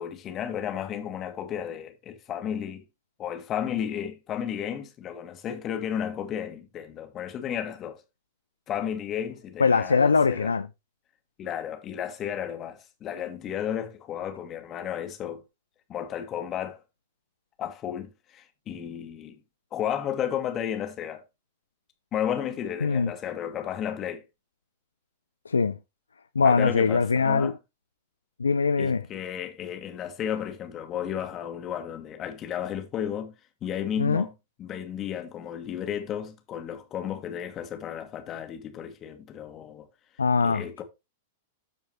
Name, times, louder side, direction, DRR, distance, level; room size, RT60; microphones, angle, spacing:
voice 1, 0.0-2.8 3.2-8.0 8.7-10.5 11.4-15.4 15.9-16.8 17.6-19.3 19.7-21.2 22.1-24.2 26.4-27.5 28.8-33.3 33.6-34.3 34.6-39.9 40.4-40.8, left 9 dB, 30° left, 1.6 m, -33 dB
voice 2, 9.6-10.7 22.8-23.1 25.5-25.8 26.4-27.5 28.4-29.0 34.0-34.2 40.2-40.6, left 5 dB, 75° left, 0.4 m, -22 dB
13.5 x 4.6 x 2.9 m
figure-of-eight pair, 95°, 0 cm